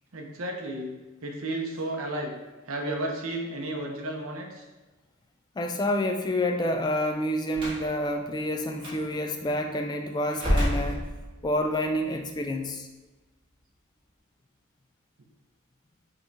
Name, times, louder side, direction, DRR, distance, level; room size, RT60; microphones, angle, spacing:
voice 1, 0.1-0.9 1.2-2.3 2.7-4.7, right 1 dB, 80° right, 2 dB, 0.8 m, -33 dB
voice 2, 5.6-11.0 11.4-12.9, left 1 dB, 20° left, 4 dB, 0.3 m, -28 dB
Slam, 7.5-7.9 8.8-9.0 10.3-11.6, equal, 25° right, 1.2 m, -28 dB
5.5 x 3.1 x 2.6 m, 1.2 s
head